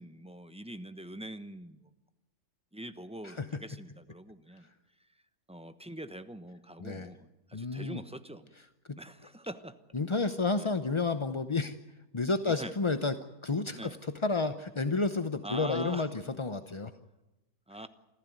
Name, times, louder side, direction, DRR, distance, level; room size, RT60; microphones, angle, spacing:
voice 1, 0.0-1.9 2.7-4.7 5.5-8.5 9.0-9.8 10.1-10.3 10.6-10.7 12.4-12.7 13.7-14.0 15.4-16.1 17.7-17.9, right 1 dB, 5° right, 11 dB, 0.8 m, -43 dB
voice 2, 7.5-8.0 8.9-9.0 9.9-11.8 12.1-13.2 13.4-16.9, left 3 dB, 35° left, 10 dB, 0.5 m, -31 dB
27.5 x 14.5 x 9.3 m, 1.0 s
omnidirectional pair, 1.7 m